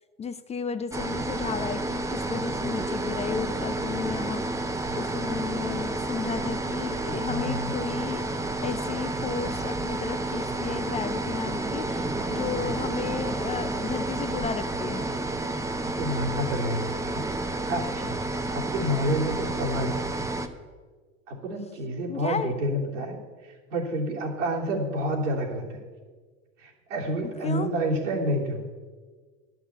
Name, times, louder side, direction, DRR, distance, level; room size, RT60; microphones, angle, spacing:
voice 1, 0.2-4.7 5.0-8.2 8.6-15.1 22.1-22.5 27.4-27.7, left 6 dB, 20° left, 12 dB, 0.4 m, -33 dB
sound 1, 0.9-20.5, right 2 dB, 10° right, 0.8 m, -30 dB
voice 2, 7.3-7.7 12.6-13.0 16.0-20.2 21.3-23.2 23.4-25.8 26.6-28.7, equal, 85° right, -3 dB, 3.0 m, -29 dB
11.5 x 6.1 x 8.1 m, 1.5 s
hypercardioid pair, 95°, 36 cm